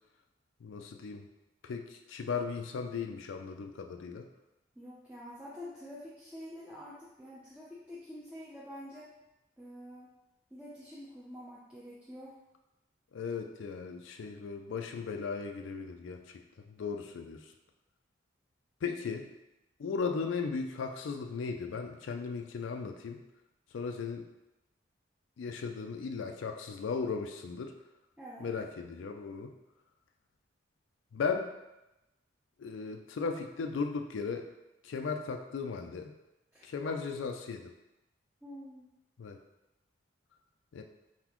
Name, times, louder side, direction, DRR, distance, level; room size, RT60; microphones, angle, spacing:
voice 1, 0.6-1.3 1.6-4.3 13.1-16.4 16.7-17.5 18.8-19.3 19.8-23.2 23.7-24.3 25.4-27.7 28.4-29.5 31.1-31.6 32.6-34.5 34.8-36.1 36.6-37.7 39.2-39.4 40.7-40.8, left 5 dB, 75° left, 5 dB, 0.4 m, -36 dB
voice 2, 4.8-9.1 9.6-10.1 10.5-12.4 28.2-28.5 36.5-36.9 38.4-38.9, equal, 5° right, -8 dB, 0.5 m, -47 dB
4.3 x 4.0 x 3.0 m, 0.95 s
head